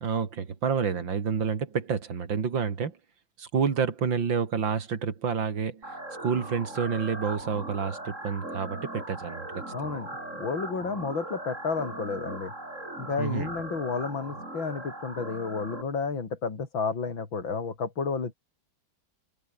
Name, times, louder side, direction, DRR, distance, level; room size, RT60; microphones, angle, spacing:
voice 1, 0.0-3.0 3.4-5.9 6.2-10.0 13.2-13.5, right 6 dB, 70° right, 3.1 m, -29 dB
sound 1, 5.8-15.8, right 1 dB, 35° right, 8.5 m, -39 dB
voice 2, 9.7-10.1 10.4-12.5 13.0-18.3, left 5 dB, 70° left, 4.2 m, -31 dB
open air
omnidirectional pair, 2.2 m